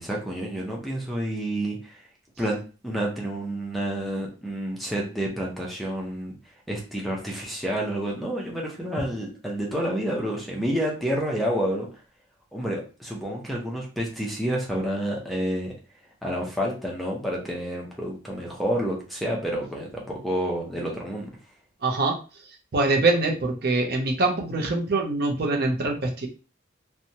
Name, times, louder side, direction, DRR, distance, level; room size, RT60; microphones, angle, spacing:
voice 1, 0.0-2.0 2.4-6.3 6.7-11.9 12.5-15.7 16.2-21.3, right 1 dB, ahead, -2 dB, 0.5 m, -29 dB
voice 2, 21.8-22.1 22.7-25.9, right 2 dB, 55° right, 1 dB, 0.6 m, -23 dB
2.8 x 2.2 x 2.7 m, 0.36 s
head